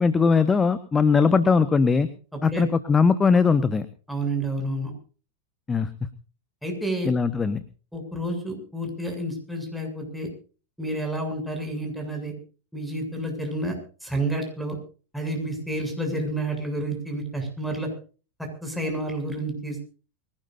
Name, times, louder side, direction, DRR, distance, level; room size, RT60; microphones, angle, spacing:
voice 1, 0.0-2.1 2.4-3.8 5.7-5.9 7.0-7.6, left 5 dB, 15° left, 13 dB, 1.3 m, -20 dB
voice 2, 4.1-4.9 6.6-7.1 7.9-10.3 10.8-12.3 12.7-13.8 14.0-14.8 15.1-17.9 18.4-19.8, right 1 dB, ahead, 5 dB, 7.6 m, -29 dB
24.5 x 18.0 x 2.7 m, 0.38 s
figure-of-eight pair, 90°, 0 cm